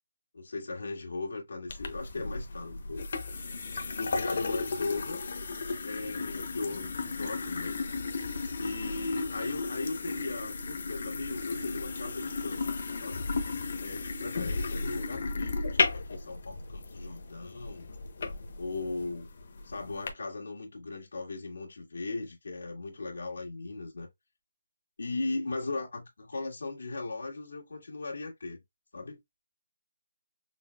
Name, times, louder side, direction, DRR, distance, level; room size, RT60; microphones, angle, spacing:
voice 1, 0.3-3.0 4.0-5.2 5.8-7.8 8.6-12.6 13.0-13.3 13.8-17.9 18.6-19.3 19.6-24.1 25.0-28.6 28.9-29.2, left 3 dB, 80° left, 1.9 m, -37 dB
sound 1, 1.7-20.1, left 4 dB, 50° left, 0.9 m, -35 dB
5.9 x 2.1 x 2.3 m
hypercardioid pair, 170°, 0 cm